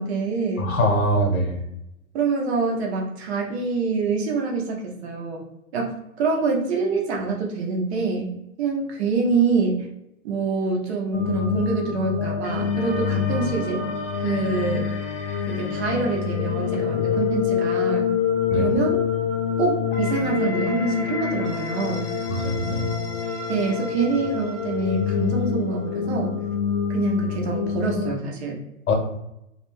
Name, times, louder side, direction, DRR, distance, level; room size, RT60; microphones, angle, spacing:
voice 1, 0.0-0.7 2.1-5.4 5.7-8.3 8.6-9.9 10.2-13.8 14.2-14.9 15.5-18.0 18.5-19.0 19.6-22.1 23.5-26.4 26.9-28.6, right 4 dB, 50° right, 0 dB, 0.7 m, -25 dB
voice 2, 0.6-1.6 18.5-18.7 22.4-22.9 28.9-29.0, equal, 75° left, 2 dB, 1.0 m, -22 dB
sound 1, 11.1-28.1, left 7 dB, 40° left, 0.4 m, -26 dB
2.3 x 2.2 x 3.0 m, 0.86 s
hypercardioid pair, 135°, 43 cm